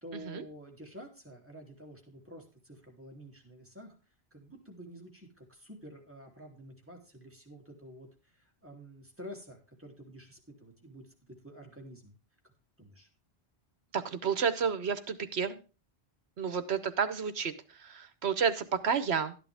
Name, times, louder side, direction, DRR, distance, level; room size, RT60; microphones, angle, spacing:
voice 1, 0.0-12.2 12.8-13.1, equal, 10° right, 0 dB, 3.0 m, -50 dB
voice 2, 13.9-15.6 16.4-19.3, right 6 dB, 70° right, 12 dB, 1.2 m, -31 dB
12.5 x 10.5 x 3.4 m, 0.34 s
omnidirectional pair, 1.1 m